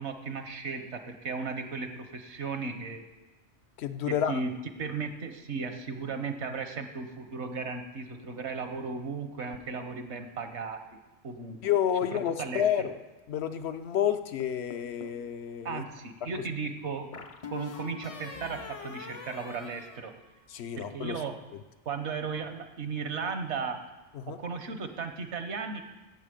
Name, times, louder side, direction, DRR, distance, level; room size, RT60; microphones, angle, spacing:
voice 1, 0.0-3.0 4.1-4.5 4.8-11.0 11.2-11.6 12.1-12.9 15.6-17.1 17.5-20.1 20.8-21.4 21.8-23.8 24.4-25.8, right 5 dB, 75° right, 7 dB, 1.3 m, -36 dB
voice 2, 3.8-4.4 11.6-12.9 13.3-15.8 20.5-21.2 24.1-24.4, left 9 dB, 70° left, 9 dB, 0.8 m, -29 dB
sound 1, 14.4-15.2 17.1-20.7, left 5 dB, 40° left, 0.5 m, -44 dB
16.0 x 7.1 x 5.1 m, 1.1 s
omnidirectional pair, 1.2 m